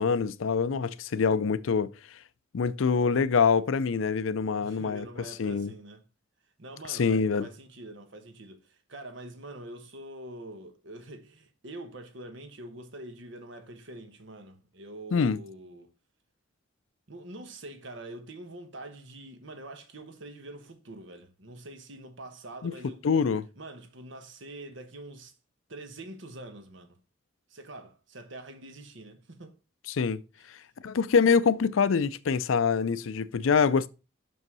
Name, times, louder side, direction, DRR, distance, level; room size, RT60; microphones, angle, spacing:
voice 1, 0.0-2.2 2.5-5.1 5.4-5.7 6.9-7.5 15.1-15.4 22.6-22.7 23.0-23.5 29.9-30.2 30.5-30.6 30.8-33.9, left 5 dB, 80° left, 0.5 m, -25 dB
voice 2, 4.6-6.0 6.6-15.9 17.1-23.1 23.6-25.3 25.7-27.0 27.5-29.6, right 1 dB, 65° right, 1.2 m, -45 dB
6.3 x 5.4 x 5.4 m
head